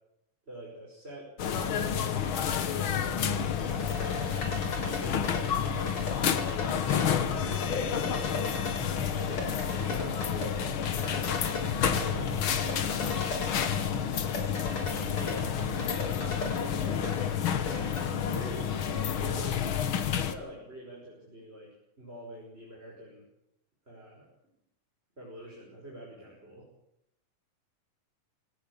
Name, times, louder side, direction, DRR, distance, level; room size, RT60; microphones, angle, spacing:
voice 1, 0.5-4.1 4.8-6.1 7.6-8.2 9.1-10.7 11.9-13.9 15.1-15.5 16.2-17.9 18.3-19.6 20.1-23.3 23.9-24.3 25.2-26.7, right 1 dB, 15° right, -4 dB, 5.9 m, -45 dB
sound 1, 1.4-20.3, left 8 dB, 65° left, 1.3 m, -30 dB
sound 2, 3.2-18.1, left 2 dB, 35° left, 4.8 m, -38 dB
voice 2, 7.0-7.3 8.0-8.4 11.1-11.3, right 3 dB, 70° right, 0 dB, 6.4 m, -47 dB
23.0 x 18.0 x 8.7 m, 0.81 s
omnidirectional pair, 4.2 m